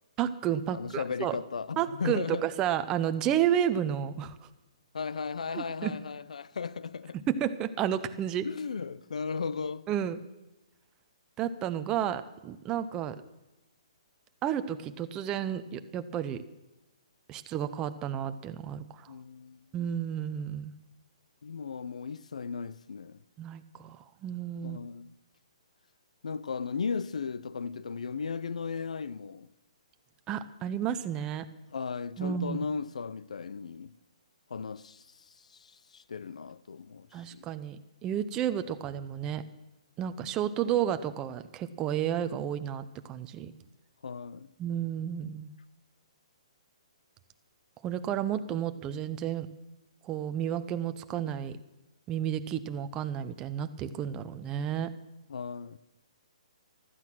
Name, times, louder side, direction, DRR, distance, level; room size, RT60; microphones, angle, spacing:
voice 1, 0.2-1.4 1.8-4.4 5.5-6.0 7.3-8.5 9.9-10.2 11.4-13.2 14.4-16.4 17.3-19.1 19.7-20.7 23.4-24.8 30.3-31.5 32.2-32.7 37.1-39.4 40.0-43.5 44.6-45.5 47.8-49.5 50.0-51.6 52.1-54.9, right 10 dB, 20° right, 0.7 m, -31 dB
voice 2, 0.7-2.5 4.9-7.2 8.4-9.8 19.1-19.7 21.4-23.2 24.6-25.1 26.2-29.5 31.7-33.9 34.5-35.1 35.5-37.5 44.0-44.5 55.3-55.8, left 5 dB, 80° left, 0.6 m, -36 dB
15.0 x 12.5 x 6.1 m
hypercardioid pair, 150°, 4 cm